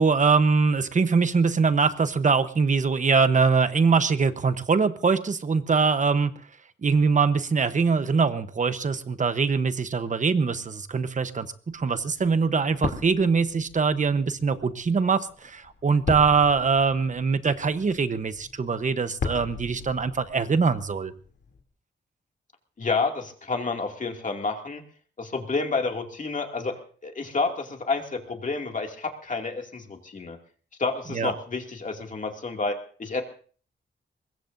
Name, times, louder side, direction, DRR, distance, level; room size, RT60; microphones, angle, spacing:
voice 1, 0.0-6.3 6.8-21.1 31.1-31.3, right 5 dB, 40° right, 11 dB, 1.0 m, -23 dB
sound 1, 11.7-21.6, left 4 dB, 60° left, 3.0 m, -38 dB
voice 2, 22.8-24.8 25.2-30.4 30.8-33.2, left 4 dB, 40° left, 2 dB, 2.5 m, -29 dB
23.5 x 21.0 x 2.7 m, 0.43 s
wide cardioid pair, 120°, 20 cm